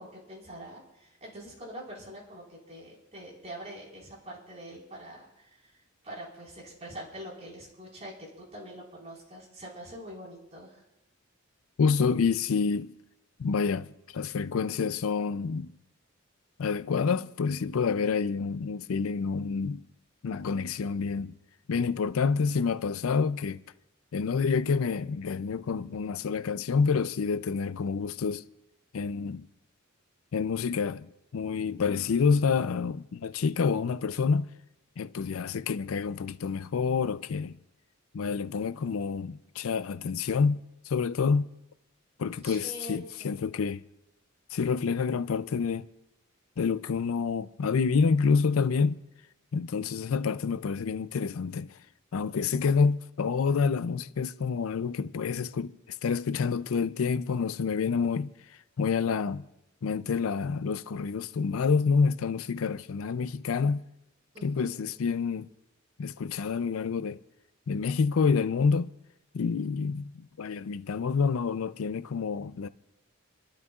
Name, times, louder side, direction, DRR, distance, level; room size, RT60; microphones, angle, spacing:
voice 1, 0.0-5.7 6.0-10.8 42.4-43.3 64.3-64.8, equal, 35° right, 4.5 m, -44 dB
voice 2, 11.8-12.9 13.4-13.9 14.1-15.7 16.6-19.8 20.2-21.3 21.7-23.6 24.1-28.4 28.9-29.5 30.3-34.5 35.0-37.6 38.1-41.5 42.2-43.8 44.5-45.9 46.6-49.0 49.5-51.7 52.1-58.3 58.8-59.4 59.8-63.8 64.4-65.5 66.0-67.2 67.7-68.9 69.3-72.7, left 5 dB, 85° left, 0.5 m, -28 dB
29.0 x 12.5 x 2.4 m
head